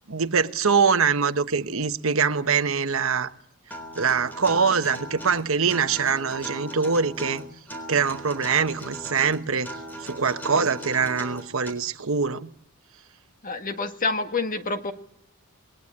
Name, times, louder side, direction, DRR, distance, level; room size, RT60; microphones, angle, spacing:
voice 1, 0.1-3.3 3.9-7.4 7.9-9.7 10.0-12.5, right 5 dB, 70° right, 1.1 m, -23 dB
Acoustic guitar, 3.7-11.7, right 1 dB, 10° left, 3.8 m, -38 dB
voice 2, 13.4-14.9, left 3 dB, 40° left, 1.7 m, -27 dB
28.0 x 21.0 x 8.7 m
head